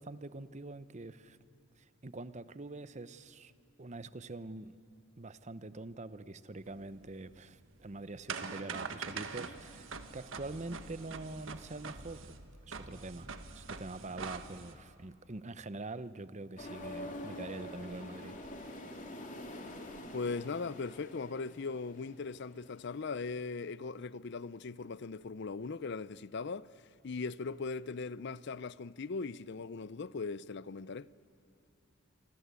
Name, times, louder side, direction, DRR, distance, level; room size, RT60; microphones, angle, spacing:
voice 1, 0.0-1.4 1.8-3.5 3.8-4.8 5.2-12.4 12.6-18.4, right 2 dB, 35° right, 0.8 m, -45 dB
sound 1, 6.7-14.8, right 5 dB, 65° right, 1.5 m, -44 dB
sound 2, 16.6-23.2, left 1 dB, 40° left, 2.9 m, -46 dB
voice 2, 20.1-31.1, left 4 dB, 55° left, 0.5 m, -39 dB
27.0 x 25.0 x 8.3 m
head